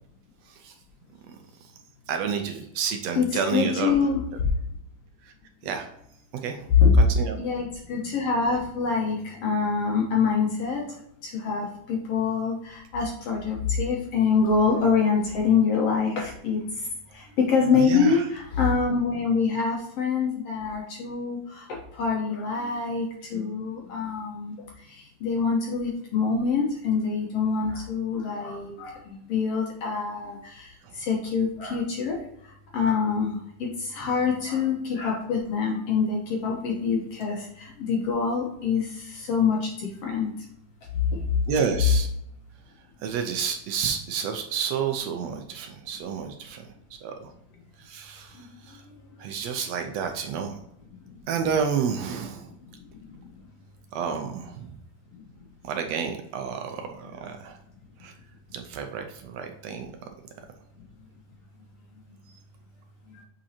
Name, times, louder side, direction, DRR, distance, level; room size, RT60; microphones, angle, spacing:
voice 1, 2.1-4.0 5.2-5.3 5.6-5.9 6.4-6.6 7.0-7.4 17.7-18.2 30.8-30.9 41.5-42.1 43.0-46.7 47.0-47.3 47.8-48.8 49.2-50.5 51.3-52.5 53.9-54.7 55.6-57.6 58.0-58.1 58.5-59.9, right 6 dB, 75° right, 5 dB, 1.6 m, -30 dB
voice 2, 3.5-4.2 6.7-6.9 7.4-10.8 11.2-16.6 17.1-24.6 24.9-32.2 32.7-33.4 33.6-40.3 40.9-41.4, left 5 dB, 65° left, -1 dB, 1.8 m, -25 dB
7.1 x 5.3 x 2.8 m, 0.74 s
omnidirectional pair, 3.6 m